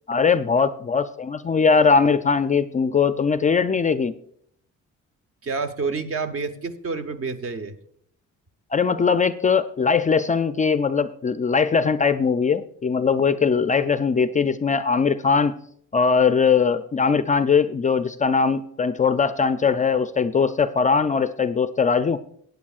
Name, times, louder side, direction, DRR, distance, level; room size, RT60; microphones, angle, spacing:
voice 1, 0.1-4.1 8.7-15.5 15.9-22.2, left 5 dB, 25° left, 11 dB, 0.4 m, -20 dB
voice 2, 5.4-7.8, right 4 dB, 45° right, 9 dB, 0.9 m, -28 dB
16.0 x 9.2 x 2.4 m, 0.68 s
cardioid pair, 90°, 30 cm